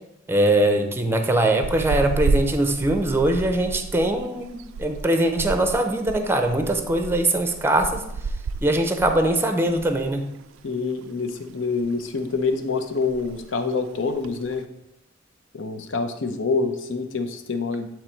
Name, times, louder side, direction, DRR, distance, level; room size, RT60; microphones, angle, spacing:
voice 1, 0.3-8.0 8.6-10.3, right 1 dB, 10° right, 6 dB, 0.5 m, -22 dB
sound 1, 1.6-10.1 10.4-10.6 11.0-11.9 12.2-12.5 12.8-12.9 13.1-13.5 14.1-14.6, right 3 dB, 80° right, 0.3 m, -31 dB
voice 2, 10.6-14.7 15.5-17.9, left 4 dB, 70° left, 7 dB, 0.7 m, -26 dB
8.3 x 3.1 x 4.3 m, 0.83 s
head